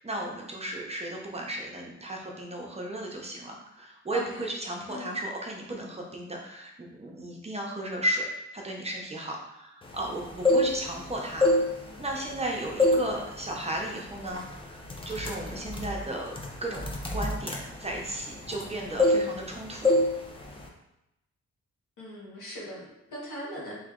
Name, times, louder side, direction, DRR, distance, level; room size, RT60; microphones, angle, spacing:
voice 1, 0.0-11.6 12.0-16.3 16.6-16.8 17.1-20.0, right 1 dB, 20° right, -1 dB, 0.7 m, -35 dB
voice 2, 4.1-4.4 4.9-5.2 22.0-23.7, equal, 85° left, -5 dB, 1.5 m, -39 dB
sound 1, 10.2-11.0 11.3-12.4 12.8-13.1 13.5-13.7 14.4-14.5 14.8-18.7 19.0-19.5 19.8-20.1 20.4-20.7, left 1 dB, 20° left, 0.5 m, -25 dB
3.2 x 2.9 x 3.7 m, 0.86 s
cardioid pair, 105°, 29 cm